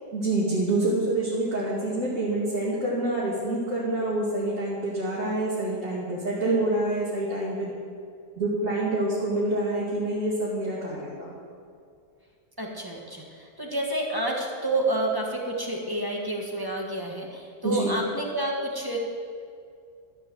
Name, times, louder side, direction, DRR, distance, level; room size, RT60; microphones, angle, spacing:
voice 1, 0.1-7.7 8.4-11.3 17.6-18.0, right 2 dB, 45° right, -8 dB, 2.8 m, -27 dB
voice 2, 12.6-19.0, right 1 dB, 15° right, -1 dB, 1.6 m, -29 dB
13.0 x 7.6 x 7.9 m, 2.3 s
omnidirectional pair, 1.8 m